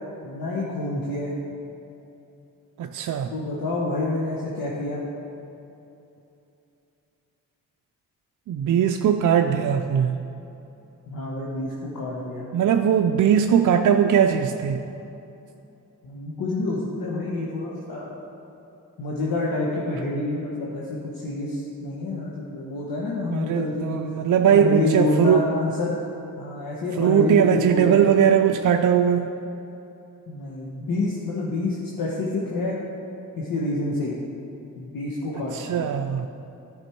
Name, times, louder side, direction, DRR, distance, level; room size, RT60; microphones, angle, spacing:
voice 1, 0.2-1.3 3.3-5.1 11.0-12.4 16.0-18.1 19.0-24.0 24.5-26.0 26.4-28.1 30.3-32.8 33.4-34.1 34.8-35.8, left 2 dB, 80° left, -5 dB, 1.2 m, -28 dB
voice 2, 2.8-3.3 8.5-10.2 12.5-14.8 23.3-25.4 27.0-29.3 35.5-36.3, right 8 dB, 60° right, 5 dB, 0.5 m, -20 dB
11.5 x 5.2 x 4.6 m, 2.9 s
cardioid pair, 70°, 34 cm